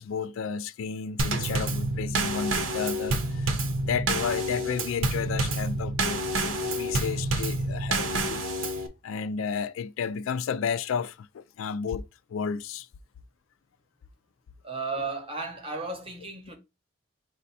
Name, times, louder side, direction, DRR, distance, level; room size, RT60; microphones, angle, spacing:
voice 1, 0.0-8.7 9.0-12.0 12.3-12.9, left 6 dB, 80° left, 0.3 m, -32 dB
Drum kit / Snare drum / Bass drum, 1.2-8.9, right 2 dB, 80° right, 0.8 m, -28 dB
voice 2, 14.6-16.6, right 3 dB, 25° right, 0.8 m, -34 dB
5.0 x 2.2 x 4.1 m
head